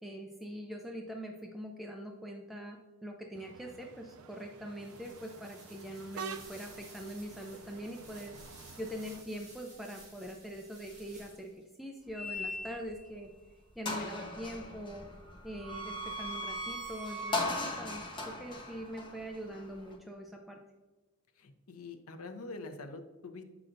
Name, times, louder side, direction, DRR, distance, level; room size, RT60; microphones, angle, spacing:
voice 1, 0.0-8.4 8.8-11.5 11.8-13.3 13.8-15.1 15.4-20.6, equal, ahead, 1 dB, 0.4 m, -43 dB
sound 1, 3.3-9.2, right 6 dB, 85° right, 0.4 m, -49 dB
sound 2, 4.8-11.6, right 2 dB, 35° right, 1.7 m, -55 dB
sound 3, 12.1-13.1 13.5-13.6 13.8-19.9, left 1 dB, 20° left, 0.9 m, -38 dB
voice 2, 21.4-23.4, left 3 dB, 85° left, 8 dB, 0.7 m, -45 dB
7.5 x 5.9 x 2.6 m, 1.2 s
head